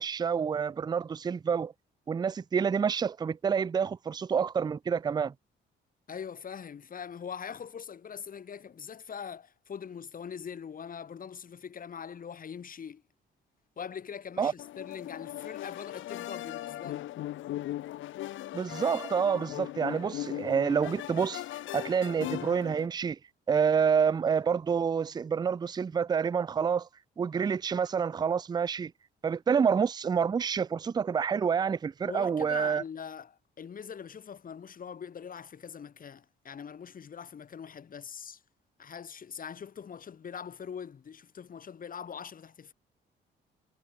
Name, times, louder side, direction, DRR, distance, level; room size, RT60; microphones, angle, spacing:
voice 1, 0.0-1.7 2.1-5.3 14.4-14.5 18.5-21.4 21.7-23.2 23.5-26.9 27.2-28.9 29.2-32.8, right 6 dB, 20° right, 0.3 m, -28 dB
voice 2, 6.1-13.0 13.8-17.1 32.1-38.4 38.8-42.7, left 7 dB, 45° left, 1.9 m, -42 dB
sound 1, 14.6-22.9, left 14 dB, 80° left, 1.1 m, -39 dB
cardioid pair, 90°, 20 cm